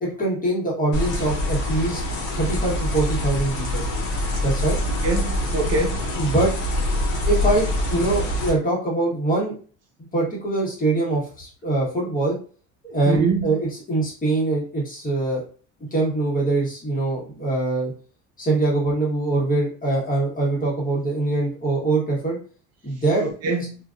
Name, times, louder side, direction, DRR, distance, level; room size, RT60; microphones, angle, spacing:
voice 1, 0.0-3.8 4.4-4.7 6.1-6.5 7.3-9.5 10.1-12.3 12.8-15.4 15.9-17.9 18.4-22.4 22.8-23.2, right 2 dB, 25° left, 1.4 m, -23 dB
sound 1, 0.9-8.5, left 1 dB, 55° left, 1.0 m, -25 dB
voice 2, 5.0-6.0 13.1-13.5 23.2-23.8, right 3 dB, 45° right, 0.5 m, -24 dB
2.6 x 2.5 x 2.5 m
supercardioid pair, 95°, 36 cm